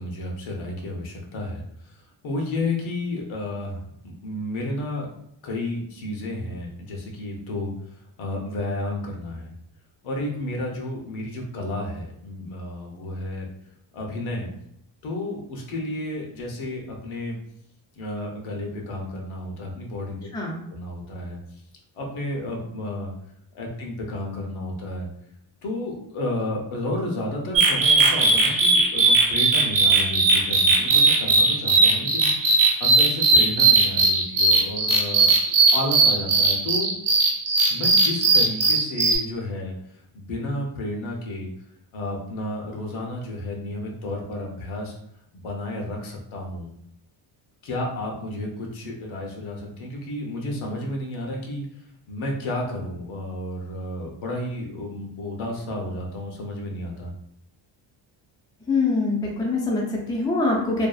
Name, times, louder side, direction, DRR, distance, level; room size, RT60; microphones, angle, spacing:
voice 1, 0.0-1.6 2.2-5.1 5.4-7.7 8.2-9.5 10.0-13.5 13.9-14.5 15.0-17.4 18.0-20.2 20.7-21.4 21.9-23.1 23.5-25.1 25.6-35.3 35.7-36.9 37.7-39.8 40.1-41.5 41.9-44.9 45.3-46.7 47.6-51.7 52.1-57.1, left 1 dB, 85° left, 0 dB, 0.8 m, -31 dB
sound 1, 27.5-39.2, right 3 dB, 45° right, 0.5 m, -19 dB
voice 2, 58.7-60.9, left 3 dB, 10° left, -2 dB, 0.4 m, -24 dB
2.6 x 2.3 x 2.3 m, 0.72 s
cardioid pair, 140°, 47 cm